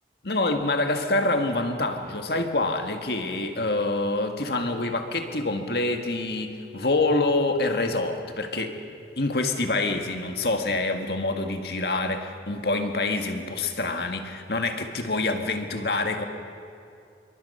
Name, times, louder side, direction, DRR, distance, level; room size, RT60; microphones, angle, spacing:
voice 1, 0.3-8.8 9.2-16.3, left 2 dB, 60° left, 5 dB, 1.8 m, -26 dB
27.0 x 23.0 x 5.7 m, 2.5 s
head